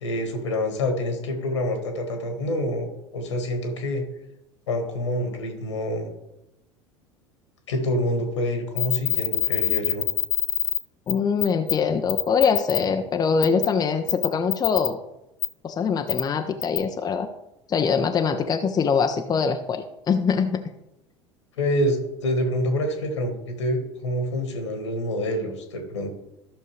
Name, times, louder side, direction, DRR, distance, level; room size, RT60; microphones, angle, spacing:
voice 1, 0.0-4.0 4.7-6.1 7.7-10.1 21.6-26.1, left 1 dB, 70° left, 5 dB, 1.9 m, -27 dB
sound 1, 8.8-10.8 11.1-11.2 11.4-11.7 12.1-12.8 13.4-13.7 14.1-14.9 15.4-15.5 16.1-16.2 16.6-16.8, left 16 dB, 55° left, 1.1 m, -24 dB
voice 2, 11.1-15.0 15.6-17.3 17.7-20.6, left 6 dB, 25° left, 6 dB, 0.7 m, -23 dB
14.0 x 6.5 x 3.3 m, 0.91 s
figure-of-eight pair, 70°, 15 cm